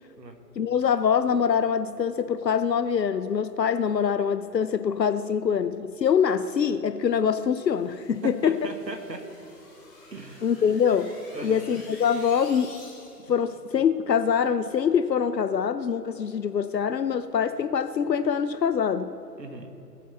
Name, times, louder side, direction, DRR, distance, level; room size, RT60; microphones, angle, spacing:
voice 1, 0.6-8.5 10.4-11.2 11.4-12.7 13.3-19.1, left 7 dB, 80° left, 12 dB, 0.7 m, -24 dB
sound 1, 7.5-13.4, left 2 dB, 15° left, 2.7 m, -50 dB
voice 2, 8.2-9.2 10.1-10.4 11.3-11.6 19.4-19.7, right 3 dB, 80° right, 5 dB, 1.8 m, -37 dB
18.5 x 8.3 x 5.8 m, 3.0 s
figure-of-eight pair, 135°, 50 cm